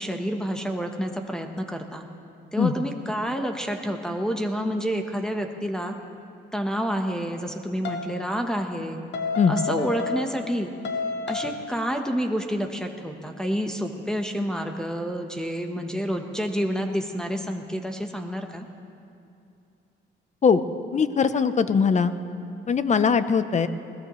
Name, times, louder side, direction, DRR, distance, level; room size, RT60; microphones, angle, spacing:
voice 1, 0.0-2.1 2.5-5.9 6.5-9.0 9.5-10.7 11.3-18.7, equal, 5° left, 2 dB, 1.1 m, -29 dB
sound 1, 7.8-8.2 9.1-10.5 10.8-11.7, left 4 dB, 60° left, 1.0 m, -30 dB
voice 2, 20.9-22.1 22.7-23.7, left 6 dB, 35° left, 12 dB, 0.7 m, -21 dB
20.5 x 17.0 x 3.1 m, 2.6 s
cardioid pair, 90°, 20 cm